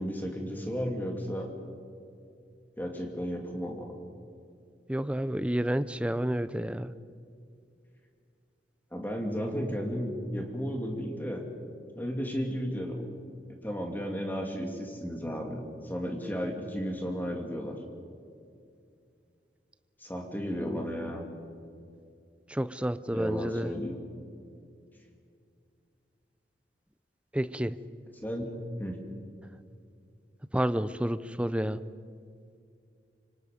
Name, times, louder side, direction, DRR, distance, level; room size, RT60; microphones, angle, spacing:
voice 1, 0.0-1.5 2.8-4.0 8.9-11.4 12.0-13.1 13.5-17.8 20.0-21.2 23.1-24.0 28.2-28.5 28.8-29.0, equal, 10° left, 2 dB, 2.5 m, -34 dB
voice 2, 4.9-6.9 22.5-23.7 27.3-27.8 30.5-31.8, right 1 dB, 5° right, 13 dB, 0.5 m, -30 dB
26.0 x 25.0 x 5.2 m, 2.4 s
head